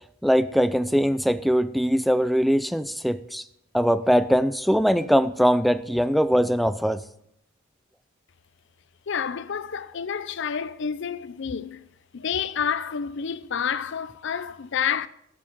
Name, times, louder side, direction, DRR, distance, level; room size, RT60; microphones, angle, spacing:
voice 1, 0.2-3.4 3.7-7.0, equal, ahead, 0.3 m, -21 dB
voice 2, 9.1-11.9 12.1-15.1, left 7 dB, 60° left, 0.5 m, -29 dB
16.5 x 7.3 x 4.5 m
head